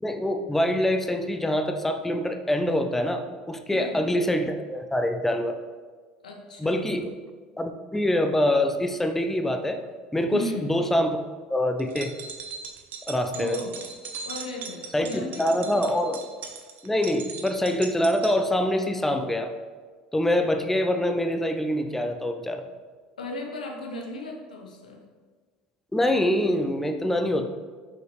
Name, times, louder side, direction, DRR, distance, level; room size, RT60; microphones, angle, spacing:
voice 1, 0.0-5.5 6.6-7.1 7.6-9.8 10.1-11.2 11.5-12.1 13.1-13.6 14.9-16.2 16.8-19.5 20.1-22.6 25.9-27.5, left 1 dB, 5° left, 6 dB, 0.5 m, -25 dB
voice 2, 3.7-4.0 6.2-6.9 10.3-10.6 13.3-13.9 14.2-15.9 23.2-25.0, left 1 dB, 80° left, 0 dB, 0.9 m, -36 dB
sound 1, 11.8-18.3, right 6 dB, 50° right, 0.9 m, -39 dB
5.8 x 5.0 x 3.4 m, 1.5 s
figure-of-eight pair, 65°, 4 cm